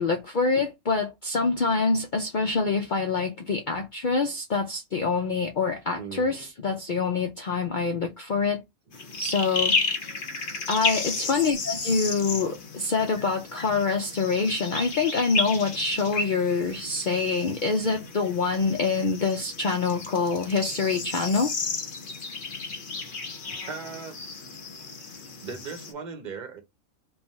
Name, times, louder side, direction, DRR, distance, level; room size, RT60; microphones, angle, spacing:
voice 1, 0.0-8.6 9.2-9.8 10.7-21.5, left 4 dB, 65° left, 0.4 m, -26 dB
voice 2, 5.9-6.8 11.0-11.4 23.7-24.2 25.4-26.6, right 5 dB, 40° right, 0.9 m, -39 dB
sound 1, 8.9-25.9, left 4 dB, 40° left, 1.0 m, -33 dB
3.4 x 2.3 x 4.1 m
omnidirectional pair, 1.5 m